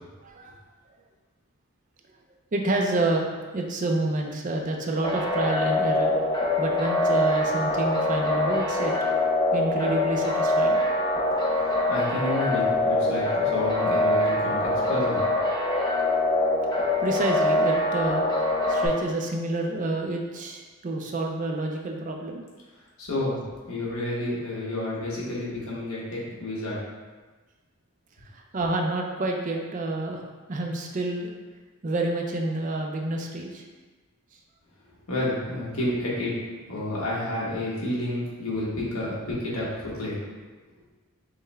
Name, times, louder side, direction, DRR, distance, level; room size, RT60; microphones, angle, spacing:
voice 1, 0.2-0.5 2.5-3.3 3.5-6.1 6.6-9.1 9.5-10.8 17.0-18.3 18.7-22.4 28.2-30.2 30.5-31.3 31.8-33.6, right 2 dB, 35° right, 1 dB, 0.4 m, -28 dB
sound 1, 5.0-18.9, left 2 dB, 20° left, 0.6 m, -24 dB
voice 2, 11.6-15.2 23.0-23.4 23.7-26.8 35.1-36.3 36.7-40.3, left 1 dB, 75° left, -6 dB, 1.2 m, -30 dB
5.4 x 2.2 x 3.3 m, 1.3 s
head